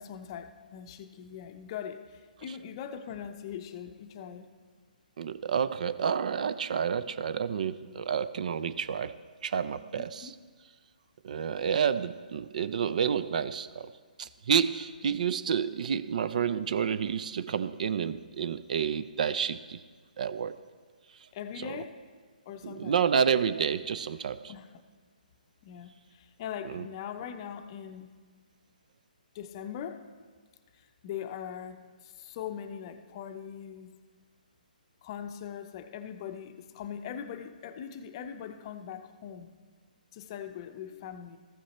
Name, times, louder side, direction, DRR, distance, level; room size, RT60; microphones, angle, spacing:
voice 1, 0.0-4.5 10.0-10.3 15.0-15.2 21.3-22.0 22.5-23.0 24.5-24.8 25.6-28.1 29.3-30.1 30.7-33.9 35.0-39.5 40.1-41.4, left 8 dB, 35° left, 8 dB, 0.6 m, -41 dB
voice 2, 5.2-9.1 9.4-10.3 11.2-13.9 14.2-19.8 20.2-20.6 21.6-21.8 22.6-24.5 26.6-26.9, right 7 dB, 55° right, 14 dB, 0.4 m, -29 dB
14.5 x 6.4 x 4.2 m, 1.5 s
hypercardioid pair, 145°, 5 cm